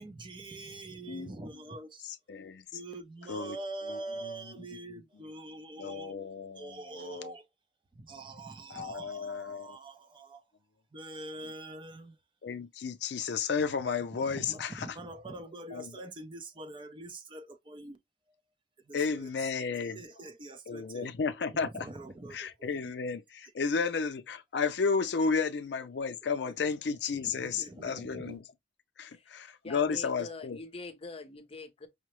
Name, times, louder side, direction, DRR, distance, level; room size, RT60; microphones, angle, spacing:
voice 1, 0.0-2.1 2.7-6.2 6.6-7.5 7.9-10.4 10.9-12.2 14.1-18.0 18.8-19.3 19.9-21.1 21.7-22.9 25.2-25.3 26.4-26.5 27.3-28.4, right 2 dB, 30° right, 0.5 m, -44 dB
voice 2, 2.0-2.7 3.3-3.6 3.9-4.6 5.8-7.3 8.7-9.8 12.4-14.9 15.7-16.0 18.9-20.0 20.7-21.9 22.3-28.4 29.0-30.6, left 5 dB, 70° left, 0.5 m, -33 dB
voice 3, 29.1-31.9, left 3 dB, 35° left, 0.7 m, -44 dB
5.6 x 2.0 x 3.0 m
head